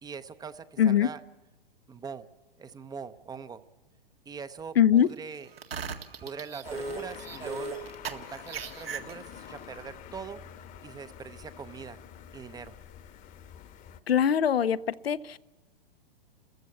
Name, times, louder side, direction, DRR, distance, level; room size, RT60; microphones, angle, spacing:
voice 1, 0.0-1.2 1.9-2.3 2.6-3.6 4.3-5.5 6.2-7.8 8.1-10.4 10.8-12.0 12.3-12.7, right 6 dB, 15° right, 13 dB, 0.7 m, -42 dB
voice 2, 0.8-1.1 4.8-5.1 14.1-14.8 15.0-15.4, left 9 dB, 80° left, 14 dB, 0.7 m, -22 dB
sound 1, 5.5-9.5, right 5 dB, 80° right, 2.0 m, -37 dB
sound 2, 6.6-14.0, left 9 dB, 25° left, 1.1 m, -47 dB
29.5 x 14.5 x 8.4 m, 1.2 s
hypercardioid pair, 115°, 30 cm